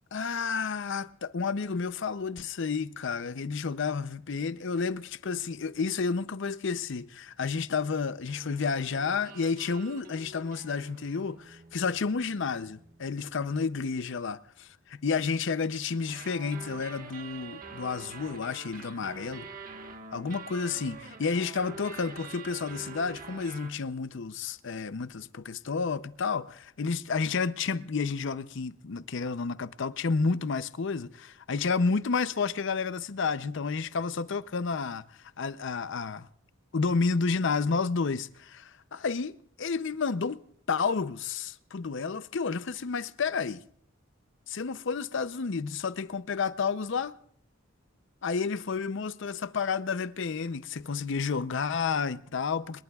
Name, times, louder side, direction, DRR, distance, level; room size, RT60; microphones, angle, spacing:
voice 1, 0.1-19.5 20.1-35.0 35.4-36.3 36.7-40.4 40.7-43.6 44.5-47.2 48.2-52.8, left 5 dB, 65° left, 0.6 m, -31 dB
sound 1, 8.3-13.7 15.9-23.7, right 4 dB, 40° right, 1.4 m, -46 dB
26.0 x 21.5 x 2.4 m
head